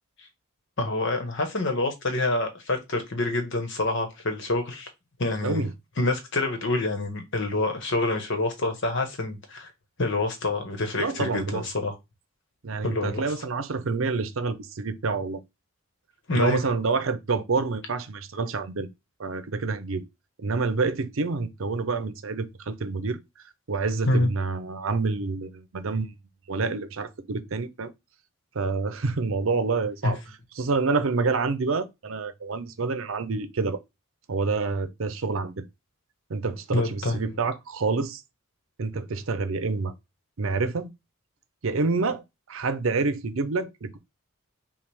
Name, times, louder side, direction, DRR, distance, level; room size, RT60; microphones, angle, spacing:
voice 1, 0.8-4.9 5.2-5.6 6.0-9.7 10.0-11.9 12.8-13.2 16.3-16.6 24.0-24.3 30.0-30.1 36.7-37.3, left 2 dB, 60° left, 1.2 m, -27 dB
voice 2, 11.0-11.6 12.6-15.4 16.3-18.9 19.2-20.0 20.4-23.2 23.7-26.1 26.5-27.9 28.5-30.2 30.6-33.8 34.3-35.6 36.3-38.2 38.8-39.9 40.4-40.9 41.6-42.2 42.5-44.0, right 4 dB, 70° right, 0.6 m, -27 dB
5.7 x 2.4 x 3.4 m
head